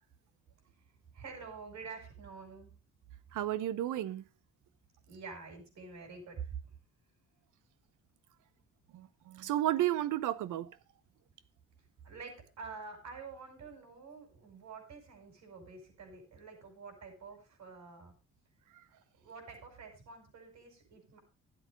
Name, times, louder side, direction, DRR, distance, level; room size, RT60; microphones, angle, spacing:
voice 1, 1.1-2.7 5.1-6.5 12.0-18.1 19.2-21.2, right 5 dB, 65° right, 6.7 m, -48 dB
voice 2, 3.3-4.2 8.9-10.7, right 13 dB, 85° right, 1.0 m, -32 dB
12.5 x 8.1 x 5.3 m
cardioid pair, 90°, 30 cm